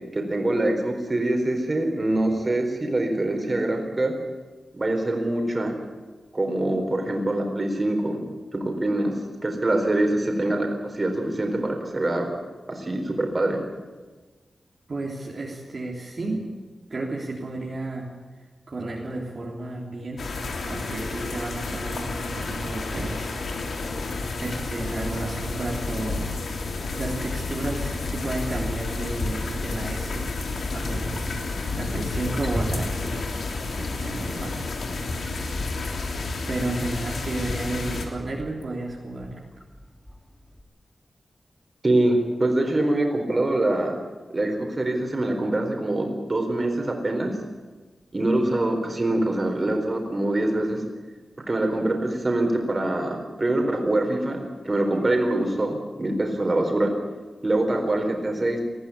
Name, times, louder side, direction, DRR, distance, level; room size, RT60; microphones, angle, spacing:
voice 1, 0.1-4.1 4.7-5.7 6.3-8.2 8.5-9.1 9.4-12.3 12.7-13.6 41.8-44.0 44.3-47.3 48.1-50.8 51.5-56.9 57.4-58.6, right 1 dB, 30° right, 3 dB, 4.3 m, -24 dB
voice 2, 14.9-16.4 16.9-18.1 18.7-20.2 20.6-23.6 24.4-30.3 30.7-31.4 31.7-33.4 33.8-35.0 36.5-39.4, right 2 dB, 50° right, -3 dB, 3.3 m, -32 dB
sound 1, 20.2-38.1, left 3 dB, 80° left, 3.1 m, -30 dB
Wild animals, 32.1-40.6, equal, 15° left, 2.5 m, -39 dB
20.5 x 14.0 x 9.8 m, 1.3 s
wide cardioid pair, 110°, 0 cm